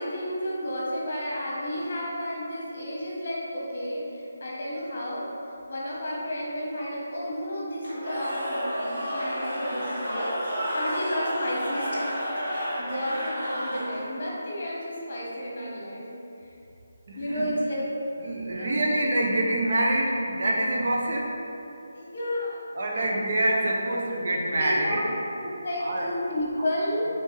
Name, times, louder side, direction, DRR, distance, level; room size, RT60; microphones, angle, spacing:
voice 1, 0.0-10.4 10.7-16.1 17.2-17.9 18.6-18.7 21.9-22.6 22.9-23.0 23.9-24.0 24.5-25.1 25.4-27.1, equal, 40° left, -5 dB, 1.2 m, -32 dB
Cheering / Crowd, 7.8-14.2, equal, 30° right, 1.4 m, -31 dB
voice 2, 17.1-17.5 18.2-21.4 22.7-25.1 25.8-26.7, right 1 dB, 45° right, -1 dB, 0.6 m, -26 dB
4.4 x 3.7 x 3.2 m, 2.8 s
hypercardioid pair, 175°, 0 cm